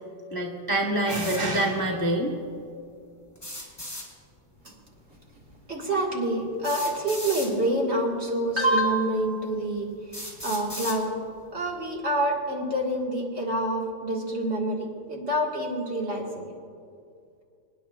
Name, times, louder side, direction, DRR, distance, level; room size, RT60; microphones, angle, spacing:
voice 1, 0.3-2.4, right 1 dB, 30° left, -1 dB, 0.4 m, -25 dB
sound 1, 1.1-1.4 3.4-4.1 5.5-5.6 6.6-7.5 8.5-8.6 9.3-9.4 10.1-11.0, left 1 dB, 10° left, 3.5 m, -36 dB
voice 2, 5.7-9.9 10.4-11.1 11.5-16.5, right 1 dB, 35° right, -2 dB, 1.9 m, -27 dB
26.0 x 9.9 x 2.4 m, 2.4 s
omnidirectional pair, 2.0 m